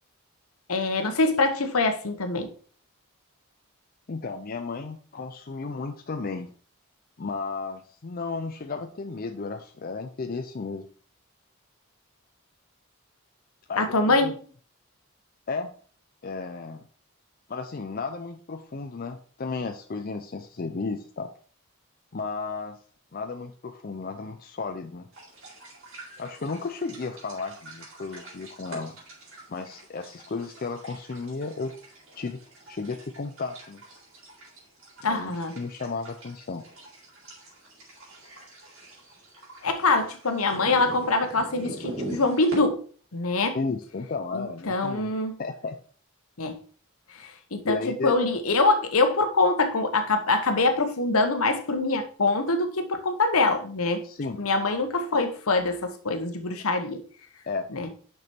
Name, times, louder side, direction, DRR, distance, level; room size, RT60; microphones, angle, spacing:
voice 1, 0.7-2.5 13.8-14.4 35.0-35.6 39.6-42.8 43.1-43.6 44.3-45.4 46.4-46.6 47.2-54.0 54.4-57.0 57.7-57.9, left 3 dB, 85° left, 1.0 m, -24 dB
voice 2, 4.1-6.5 7.2-10.9 13.7-14.3 15.5-15.7 16.2-16.8 17.5-21.3 22.1-22.8 23.1-25.1 26.2-29.0 29.5-31.7 32.2-32.4 32.7-33.8 35.0-36.6 43.5-45.1 45.4-45.8 47.6-48.1 54.0-54.4 57.5-57.7, left 4 dB, 45° left, 0.5 m, -33 dB
sound 1, 25.1-42.6, right 1 dB, 65° right, 4.0 m, -44 dB
6.1 x 6.0 x 4.3 m
head